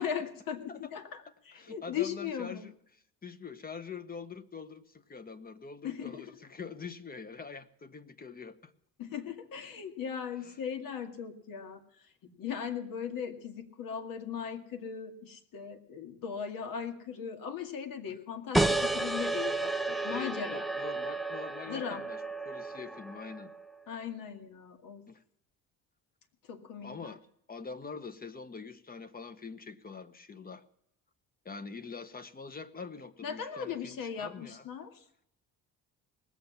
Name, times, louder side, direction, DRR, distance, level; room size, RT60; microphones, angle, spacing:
voice 1, 0.0-2.6 5.8-6.3 9.0-20.6 21.7-22.0 23.9-25.0 26.5-27.2 33.2-35.0, left 7 dB, 70° left, 6 dB, 2.2 m, -38 dB
voice 2, 1.5-2.7 3.2-8.7 20.1-22.2 22.4-23.5 25.1-25.2 26.8-27.2 27.5-30.6 31.4-34.7, left 5 dB, 25° left, 12 dB, 1.0 m, -44 dB
sound 1, 18.5-23.7, right 2 dB, ahead, 0.5 m, -32 dB
19.5 x 7.9 x 7.1 m, 0.73 s
cardioid pair, 110°, 35 cm